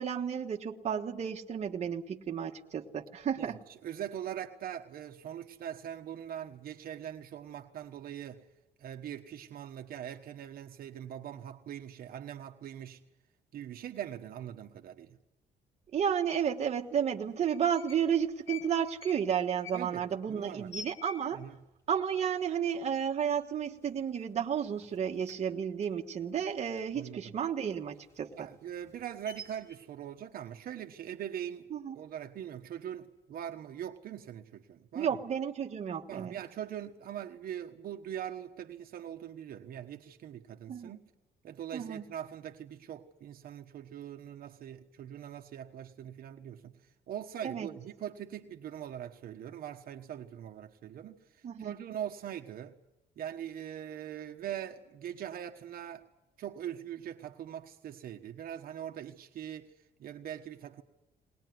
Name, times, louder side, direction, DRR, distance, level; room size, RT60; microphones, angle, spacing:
voice 1, 0.0-3.6 15.9-21.4 21.9-28.5 31.7-32.0 34.9-36.3 40.7-40.9 41.7-42.0 47.4-47.7 51.4-51.7, right 8 dB, 40° right, 1.5 m, -32 dB
voice 2, 3.4-8.4 8.8-13.0 13.5-15.2 19.7-20.7 21.3-21.6 26.9-27.3 28.3-31.7 31.9-35.2 36.1-41.0 41.4-46.8 47.1-52.8 53.2-56.0 56.4-59.7 60.0-60.8, right 10 dB, 55° right, 1.3 m, -42 dB
sound 1, 16.3-16.4 17.3-18.1 18.4-21.6 21.9-22.0 22.3-22.8 23.2-23.4 23.7-24.5 24.7-27.1 27.5-29.8, left 4 dB, 15° left, 4.8 m, -48 dB
21.0 x 20.0 x 9.4 m
cardioid pair, 150°, 17 cm